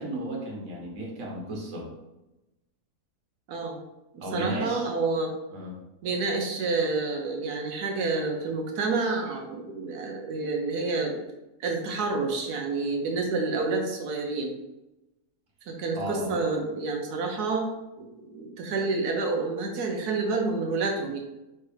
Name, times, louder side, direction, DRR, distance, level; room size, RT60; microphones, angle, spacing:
voice 1, 0.0-1.9 4.2-4.9 5.5-5.8 15.9-16.4, right 1 dB, 60° right, -3 dB, 1.6 m, -34 dB
voice 2, 4.3-5.3 6.0-11.2 11.6-14.5 15.7-17.7 18.0-21.2, right 3 dB, 80° right, 2 dB, 1.2 m, -28 dB
4.4 x 3.1 x 3.3 m, 0.96 s
omnidirectional pair, 1.7 m